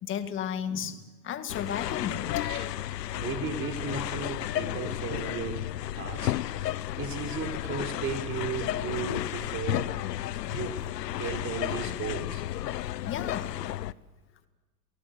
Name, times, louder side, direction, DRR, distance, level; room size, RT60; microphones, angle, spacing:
voice 1, 0.0-2.4 6.2-6.3 10.4-10.5 12.8-13.6, left 8 dB, 25° left, 8 dB, 2.1 m, -34 dB
sound 1, 1.5-13.9, left 13 dB, 75° left, 0.9 m, -33 dB
voice 2, 3.1-6.4 6.6-9.9 10.5-10.8 11.1-12.4, right 6 dB, 25° right, 4 dB, 4.3 m, -35 dB
28.5 x 18.5 x 8.0 m, 1.3 s
hypercardioid pair, 130°, 49 cm